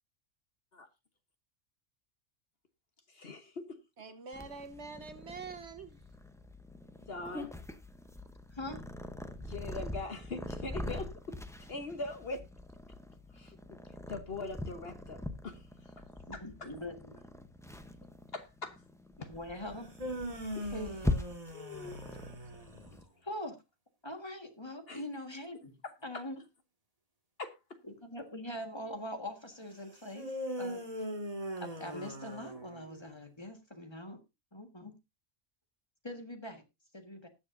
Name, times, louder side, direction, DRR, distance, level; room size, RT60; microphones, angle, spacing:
voice 1, 3.1-3.8 7.1-7.5 9.5-11.4 11.7-12.5 13.3-13.6 14.1-15.6 16.3-16.7 18.3-18.8 19.2-19.3 20.5-20.7 21.5-22.0 24.9-25.0 25.8-26.2 27.4-27.8, left 3 dB, 50° left, 1.2 m, -42 dB
voice 2, 4.0-6.0, right 4 dB, 55° right, 1.3 m, -45 dB
Purr, 4.3-23.0, left 1 dB, 5° left, 0.6 m, -42 dB
voice 3, 16.3-17.2 19.3-19.9 20.7-20.9 23.2-23.5 24.0-25.8 26.0-26.4 27.8-30.3 30.6-30.8 31.6-34.2 34.5-34.9 36.0-36.6 36.9-37.3, left 1 dB, 20° left, 1.6 m, -42 dB
sound 1, 19.7-23.0 30.1-33.1, equal, 25° right, 2.1 m, -40 dB
20.0 x 7.1 x 2.6 m
omnidirectional pair, 1.4 m